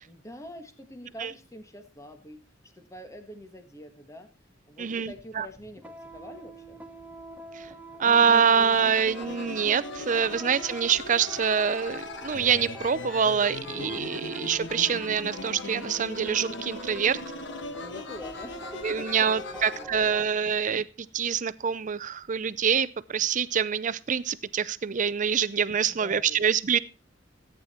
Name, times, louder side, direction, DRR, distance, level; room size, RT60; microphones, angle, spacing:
voice 1, 0.1-2.4 2.8-4.3 4.7-6.8 17.6-20.2 25.8-26.5, left 1 dB, 15° left, 7 dB, 1.5 m, -46 dB
voice 2, 4.8-5.5 8.0-17.2 18.8-20.9 21.1-26.8, right 7 dB, 40° right, 18 dB, 0.5 m, -25 dB
sound 1, 5.1-20.3, right 1 dB, 10° right, 1.0 m, -45 dB
sound 2, 8.0-19.8, left 3 dB, 65° left, 1.3 m, -39 dB
15.0 x 9.0 x 4.2 m, 0.32 s
head